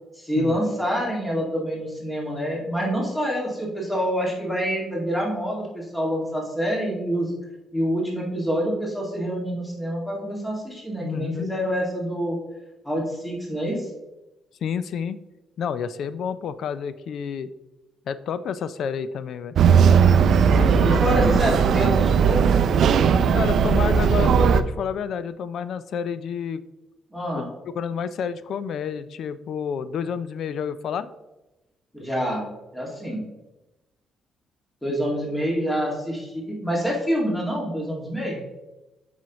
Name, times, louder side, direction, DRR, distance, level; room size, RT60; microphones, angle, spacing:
voice 1, 0.2-7.3 7.7-12.4 12.8-13.9 20.5-22.6 27.1-27.5 31.9-32.5 32.7-33.2 34.8-38.4, equal, 5° left, -2 dB, 2.1 m, -26 dB
voice 2, 11.0-11.5 14.6-15.2 15.6-17.5 18.1-19.6 20.5-21.4 23.3-26.6 27.3-27.4 27.7-31.1 34.9-35.0, left 7 dB, 65° left, 14 dB, 0.4 m, -30 dB
sound 1, 19.6-24.6, right 6 dB, 65° right, 0.4 m, -17 dB
7.5 x 5.6 x 3.0 m, 1.0 s
cardioid pair, 90°, 0 cm